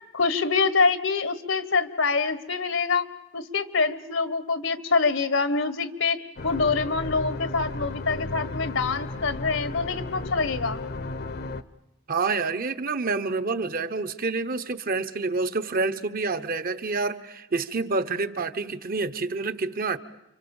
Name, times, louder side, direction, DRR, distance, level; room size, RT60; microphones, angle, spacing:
voice 1, 0.1-3.0 3.3-10.8, left 4 dB, 75° left, 14 dB, 1.3 m, -25 dB
sound 1, 6.4-11.6, left 2 dB, 55° left, 0.9 m, -34 dB
voice 2, 12.1-20.0, right 3 dB, 45° right, 12 dB, 1.0 m, -28 dB
29.5 x 25.0 x 7.1 m, 0.96 s
head